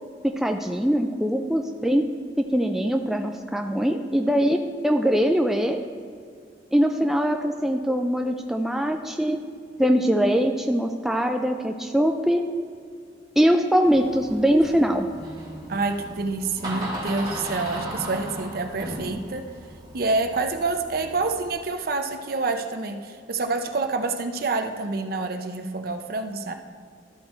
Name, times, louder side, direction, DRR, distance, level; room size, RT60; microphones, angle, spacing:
voice 1, 0.2-2.1 2.4-4.6 4.8-5.9 6.7-9.4 9.8-12.4 13.4-15.1, equal, ahead, 4 dB, 0.3 m, -22 dB
Door, 13.8-21.5, right 1 dB, 25° right, 1.8 m, -37 dB
voice 2, 15.7-19.5 19.9-26.5, right 3 dB, 55° right, 6 dB, 0.6 m, -27 dB
13.0 x 4.3 x 4.4 m, 2.2 s
head